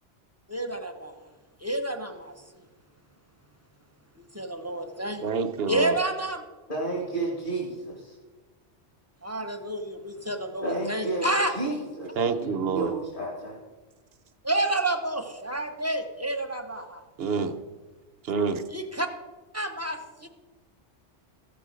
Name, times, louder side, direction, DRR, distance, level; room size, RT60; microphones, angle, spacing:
voice 1, 0.5-1.1 1.6-2.3 4.2-5.2 5.7-6.4 9.2-11.5 14.4-17.0 18.7-19.1 19.5-20.3, right 1 dB, 15° right, 5 dB, 0.7 m, -29 dB
voice 2, 5.2-6.0 12.2-12.9 17.2-17.5 18.2-18.6, right 5 dB, 65° right, 8 dB, 0.9 m, -27 dB
voice 3, 6.7-8.1 10.6-11.3 11.5-13.6, right 2 dB, 45° left, -2 dB, 2.3 m, -31 dB
15.0 x 6.9 x 5.0 m, 1.3 s
omnidirectional pair, 1.2 m